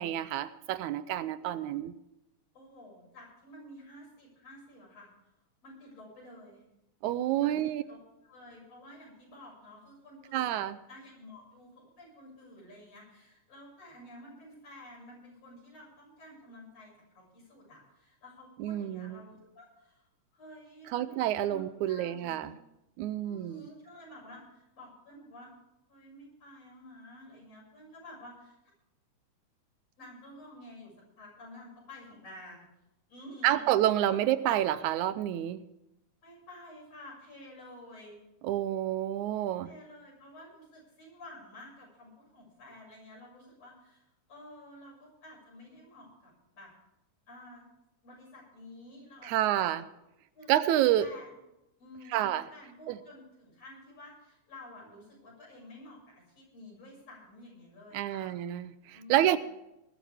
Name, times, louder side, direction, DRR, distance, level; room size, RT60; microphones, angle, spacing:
voice 1, 0.0-1.9 7.0-7.8 10.3-10.8 18.6-19.2 20.9-22.6 23.0-23.7 33.4-35.6 38.4-39.7 49.2-49.9 50.5-51.1 52.1-52.5 52.9-53.0 57.9-59.4, right 12 dB, 80° right, 14 dB, 2.0 m, -29 dB
voice 2, 2.5-5.1 5.6-6.6 7.4-8.0 8.3-10.6 10.9-21.6 21.9-22.5 23.2-25.5 25.9-28.6 30.0-32.7 33.1-33.7 34.1-34.2 36.2-38.2 39.6-46.7 47.3-47.7 48.0-49.7 50.3-50.5 51.0-51.3 51.8-52.2 52.5-58.3 58.9-59.4, left 1 dB, 55° left, -3 dB, 7.7 m, -51 dB
20.0 x 13.5 x 3.5 m, 0.88 s
omnidirectional pair, 3.4 m